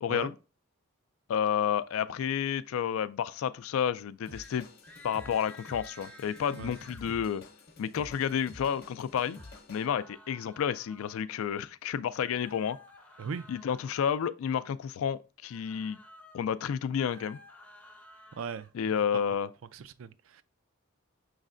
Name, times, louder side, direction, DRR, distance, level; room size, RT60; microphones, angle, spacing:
voice 1, 0.0-0.3 1.3-4.7 5.0-7.4 7.8-9.4 9.7-12.8 13.5-16.0 16.3-17.4 18.7-19.5, left 8 dB, 70° left, 0.3 m, -30 dB
sound 1, 4.2-4.6 4.8-7.0 9.1-11.3 12.2-14.0 15.4-16.4 16.8-18.7, left 1 dB, 10° left, 0.5 m, -53 dB
Drum kit / Drum, 4.3-9.9, left 2 dB, 50° left, 0.7 m, -50 dB
voice 2, 18.4-18.7 19.7-20.4, right 6 dB, 65° right, 0.4 m, -38 dB
6.3 x 3.2 x 2.5 m
head